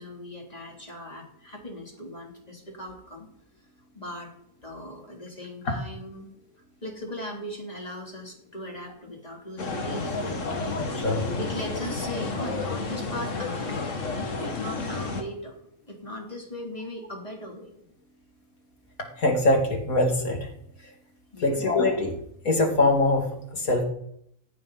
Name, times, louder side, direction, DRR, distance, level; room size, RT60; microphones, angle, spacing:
voice 1, 0.0-3.3 4.0-4.3 4.6-6.3 6.8-10.5 11.4-13.9 14.4-15.6 15.9-17.7 21.3-21.6, left 1 dB, 25° left, 0 dB, 3.4 m, -38 dB
sound 1, 9.6-15.2, left 3 dB, 60° left, 2.2 m, -31 dB
voice 2, 10.8-11.3 19.2-20.5 21.4-22.2 22.4-23.8, left 2 dB, 75° left, 1 dB, 3.2 m, -23 dB
16.5 x 15.5 x 4.1 m, 0.74 s
omnidirectional pair, 1.5 m